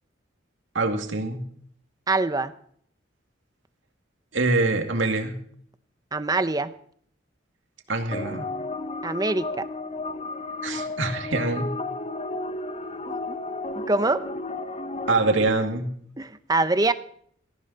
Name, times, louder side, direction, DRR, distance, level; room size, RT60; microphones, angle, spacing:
voice 1, 0.7-1.4 4.3-5.3 7.9-8.5 10.6-11.7 15.1-15.9, right 3 dB, 80° right, 5 dB, 2.3 m, -24 dB
voice 2, 2.1-2.5 6.1-6.7 9.0-9.7 13.1-13.4 13.7-14.2 16.2-16.9, right 2 dB, 20° right, 12 dB, 0.7 m, -24 dB
sound 1, 8.1-15.5, left 2 dB, 30° left, 0.8 m, -33 dB
18.0 x 14.0 x 4.1 m, 0.63 s
head